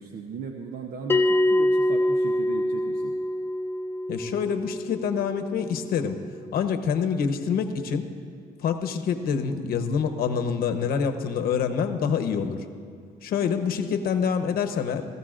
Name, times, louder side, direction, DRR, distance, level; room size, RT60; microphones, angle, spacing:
voice 1, 0.0-3.1, right 5 dB, 60° right, 3 dB, 0.8 m, -37 dB
Bell, 1.1-6.1, left 1 dB, 15° left, 0.3 m, -25 dB
voice 2, 4.1-6.2 6.5-8.1 8.6-12.6 13.2-15.1, left 6 dB, 65° left, 6 dB, 0.9 m, -26 dB
19.0 x 14.0 x 2.5 m, 2.2 s
cardioid pair, 110°, 17 cm